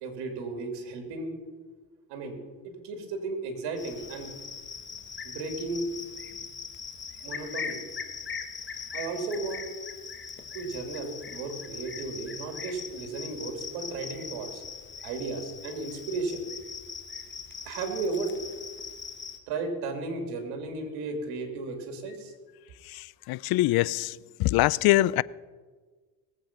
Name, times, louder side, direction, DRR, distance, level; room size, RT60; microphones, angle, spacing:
voice 1, 0.0-1.3 2.1-2.4 2.6-4.3 5.2-5.9 7.2-7.8 8.9-9.7 10.5-14.6 15.0-16.4 17.6-18.3 19.5-22.3, right 3 dB, 90° right, 2.6 m, -34 dB
Cricket, 3.8-19.4, left 6 dB, 30° left, 1.7 m, -40 dB
voice 2, 23.3-24.1 24.4-25.2, left 17 dB, 70° left, 0.5 m, -23 dB
20.0 x 8.0 x 5.8 m
cardioid pair, 95°, 39 cm